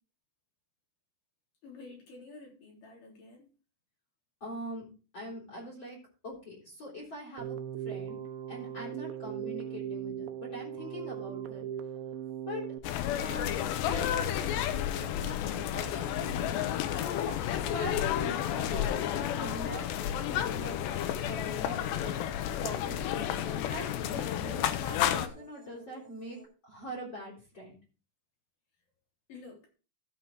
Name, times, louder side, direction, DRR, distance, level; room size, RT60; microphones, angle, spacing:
voice 1, 1.6-3.5 29.3-29.7, left 3 dB, 50° left, -1 dB, 4.6 m, -50 dB
voice 2, 4.4-4.9 5.1-6.0 6.2-7.6 7.8-8.2 8.5-11.6 12.5-12.6 13.2-19.9 20.2-27.8, left 1 dB, 30° left, -3 dB, 4.5 m, -43 dB
Keyboard (musical), 7.4-12.8, right 9 dB, 75° right, 2.3 m, -38 dB
sound 1, 12.8-25.3, left 10 dB, 80° left, 3.1 m, -31 dB
sound 2, 20.5-26.5, right 6 dB, 25° right, 3.5 m, -55 dB
15.0 x 5.6 x 4.8 m, 0.35 s
omnidirectional pair, 4.9 m